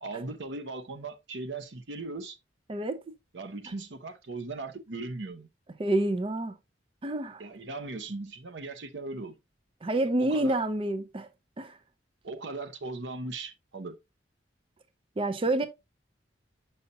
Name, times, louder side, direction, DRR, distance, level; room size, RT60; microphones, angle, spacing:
voice 1, 0.0-2.4 3.3-5.5 7.4-9.3 10.2-10.6 12.2-14.0, right 3 dB, 75° right, 0.8 m, -38 dB
voice 2, 2.7-3.1 5.8-6.6 7.0-7.4 9.8-11.3 11.6-11.8 15.2-15.7, right 1 dB, 30° right, 0.5 m, -28 dB
6.8 x 5.6 x 2.7 m
head